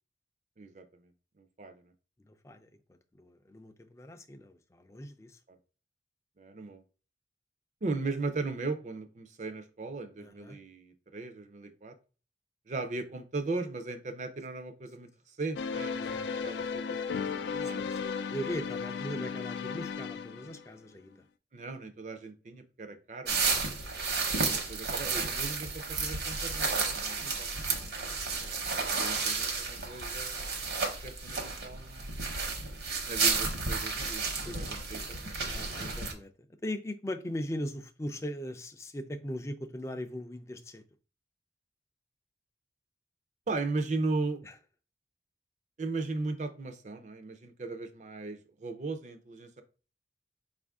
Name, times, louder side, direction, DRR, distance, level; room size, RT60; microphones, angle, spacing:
voice 1, 0.6-1.1 1.4-1.9 6.4-6.8 7.8-11.9 12.7-17.8 19.1-19.2 21.5-23.5 24.3-27.7 29.0-32.3 33.0-35.4 43.5-44.4 45.8-49.6, right 3 dB, 45° right, 0.5 m, -38 dB
voice 2, 2.2-5.4 10.2-10.6 15.9-16.8 17.6-21.2 23.3-24.1 26.9-27.2 27.7-28.5 34.4-34.6 35.5-36.3 36.6-40.8 44.4-44.5, equal, 15° left, 0.4 m, -40 dB
sound 1, 15.6-20.7, left 5 dB, 90° left, 0.3 m, -35 dB
sound 2, 23.3-36.1, right 4 dB, 65° right, 1.0 m, -32 dB
4.8 x 2.5 x 3.4 m
head